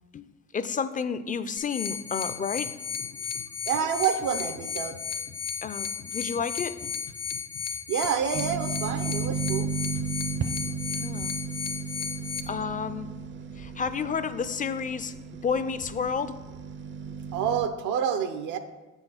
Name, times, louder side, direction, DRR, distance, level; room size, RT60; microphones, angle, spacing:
voice 1, 0.5-2.7 5.6-7.0 11.0-11.4 12.5-13.1 13.5-15.1 15.4-16.4, left 6 dB, 25° left, 13 dB, 0.4 m, -31 dB
sound 1, 1.6-12.4, left 7 dB, 55° left, 0.8 m, -34 dB
sound 2, 1.9-7.7 8.0-8.1 8.5-9.6 9.9-10.8, left 6 dB, 80° left, 1.0 m, -49 dB
voice 2, 3.7-5.0 7.9-9.7 17.3-18.6, right 8 dB, 85° right, 7 dB, 0.6 m, -28 dB
sound 3, 8.3-17.7, right 5 dB, 40° right, 0.4 m, -34 dB
7.2 x 4.4 x 5.6 m, 1.2 s
cardioid pair, 90°, 30 cm